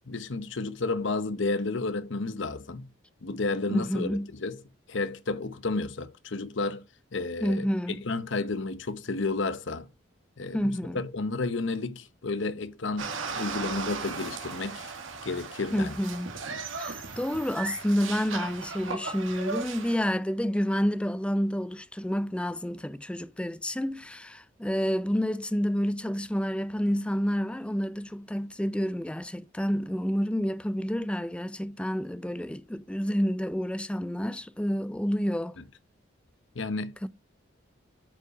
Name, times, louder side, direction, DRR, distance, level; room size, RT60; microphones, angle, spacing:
voice 1, 0.1-2.8 3.2-4.6 4.9-6.8 7.1-9.9 10.4-14.9 15.2-16.0 36.5-36.9, left 3 dB, 65° left, 0.8 m, -31 dB
voice 2, 3.7-4.3 7.4-8.0 10.5-11.0 15.7-16.3 16.8-35.6 37.0-37.1, equal, 5° left, 0.3 m, -29 dB
sound 1, 13.0-20.0, right 4 dB, 75° right, 1.8 m, -37 dB
8.7 x 5.5 x 4.8 m
head